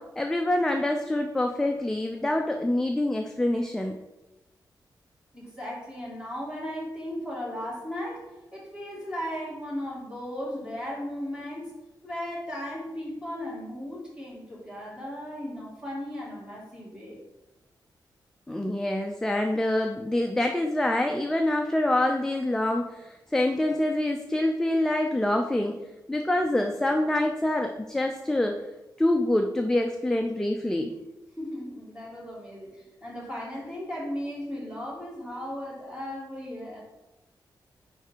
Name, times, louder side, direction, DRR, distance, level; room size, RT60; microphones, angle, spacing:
voice 1, 0.0-4.0 18.5-25.8 26.1-28.6 29.0-30.9, left 1 dB, 5° left, 3 dB, 0.4 m, -26 dB
voice 2, 5.3-8.2 8.5-11.7 12.0-17.2 31.4-36.8, equal, 10° right, -5 dB, 2.3 m, -36 dB
9.6 x 3.3 x 4.5 m, 1.0 s
wide cardioid pair, 160°, 8 cm